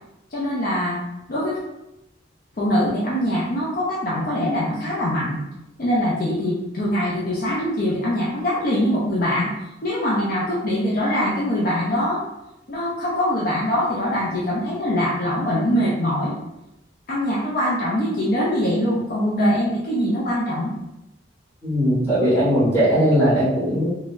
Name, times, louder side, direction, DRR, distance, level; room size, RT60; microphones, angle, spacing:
voice 1, 0.3-1.6 2.6-5.4 5.8-9.5 9.8-12.2 12.7-16.3 17.1-20.7, equal, 50° left, -6 dB, 0.5 m, -23 dB
voice 2, 21.6-23.9, equal, 15° left, -11 dB, 1.5 m, -19 dB
3.7 x 2.1 x 2.4 m, 0.90 s
head